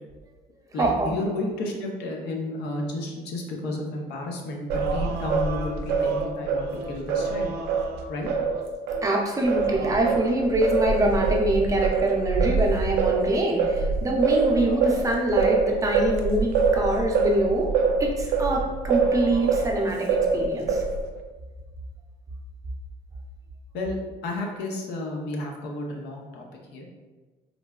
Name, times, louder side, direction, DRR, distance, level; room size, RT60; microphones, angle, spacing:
voice 1, 0.7-7.6 8.1-8.3 23.7-24.0 24.2-26.4 26.7-26.9, left 2 dB, 80° left, 0 dB, 0.6 m, -32 dB
Singing, 4.7-9.1 9.5-19.7 20.1-21.1, right 4 dB, 80° right, 0.4 m, -25 dB
voice 2, 9.0-17.7 18.0-20.8, right 1 dB, 20° right, -1 dB, 0.6 m, -24 dB
3.8 x 2.2 x 2.2 m, 1.3 s
cardioid pair, 110°, 17 cm